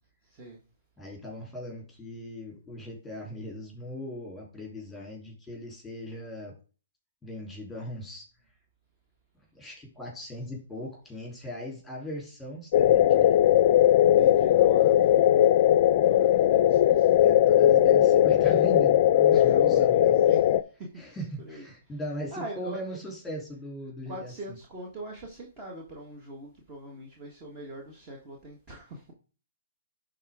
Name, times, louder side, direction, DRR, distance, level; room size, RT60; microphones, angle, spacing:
voice 1, 1.0-6.5 7.2-8.2 9.6-13.4 17.1-20.3 21.0-24.3, equal, 5° left, 3.4 m, -39 dB
sound 1, 12.7-20.6, left 11 dB, 45° left, 0.4 m, -19 dB
voice 2, 14.0-15.5 16.1-17.1 19.3-20.5 20.8-22.8 24.1-29.1, right 1 dB, 25° right, 1.6 m, -42 dB
10.5 x 3.9 x 3.7 m
hypercardioid pair, 130°, 0 cm